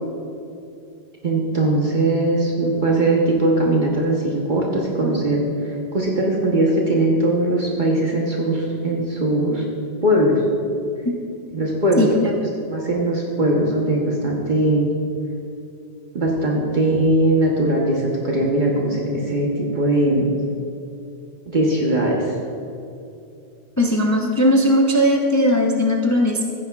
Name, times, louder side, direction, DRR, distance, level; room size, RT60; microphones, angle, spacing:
voice 1, 1.2-9.6 10.0-10.4 11.5-12.1 12.7-14.9 16.1-20.3 21.5-22.4, right 1 dB, 50° right, -2 dB, 1.2 m, -20 dB
voice 2, 12.0-12.3 23.8-26.4, equal, 20° left, 0 dB, 0.6 m, -18 dB
15.0 x 9.5 x 2.3 m, 2.6 s
omnidirectional pair, 1.0 m